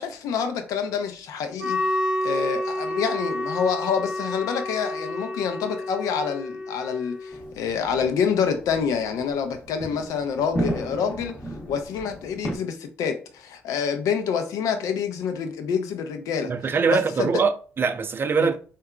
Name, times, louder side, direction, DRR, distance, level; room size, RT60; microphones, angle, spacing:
voice 1, 0.0-1.8 2.2-11.4 11.7-16.5 16.9-17.3 18.4-18.5, left 6 dB, 70° left, 0.5 m, -27 dB
Wind instrument woodwind instrument, 1.6-7.4, left 1 dB, 15° right, 1.0 m, -29 dB
sound 1, 7.3-12.6, right 1 dB, 20° left, 0.9 m, -34 dB
voice 2, 16.4-18.6, right 5 dB, 35° right, 0.4 m, -23 dB
3.5 x 2.3 x 2.3 m
hypercardioid pair, 55°, 6 cm